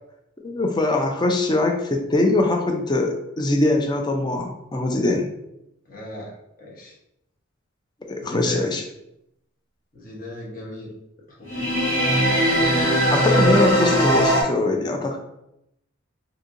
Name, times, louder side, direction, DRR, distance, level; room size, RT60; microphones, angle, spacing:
voice 1, 0.4-5.3 8.1-8.8 13.1-15.2, left 2 dB, 20° left, 3 dB, 0.4 m, -22 dB
voice 2, 5.9-6.9 8.2-8.6 9.9-10.9 11.3-11.7, left 1 dB, 45° left, -4 dB, 1.0 m, -36 dB
sound 1, 11.5-14.4, equal, 90° left, 1.2 m, -19 dB
4.2 x 2.6 x 2.5 m, 0.81 s
head